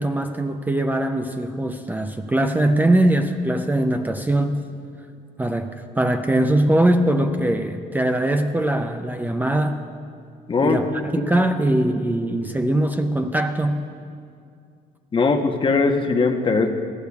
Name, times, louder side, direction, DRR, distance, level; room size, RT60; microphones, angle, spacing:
voice 1, 0.0-4.6 5.4-9.8 10.6-13.8, right 1 dB, 10° right, 6 dB, 0.5 m, -21 dB
voice 2, 15.1-16.7, left 4 dB, 30° left, 5 dB, 0.9 m, -20 dB
19.5 x 14.0 x 2.4 m, 2.3 s
cardioid pair, 110°, 17 cm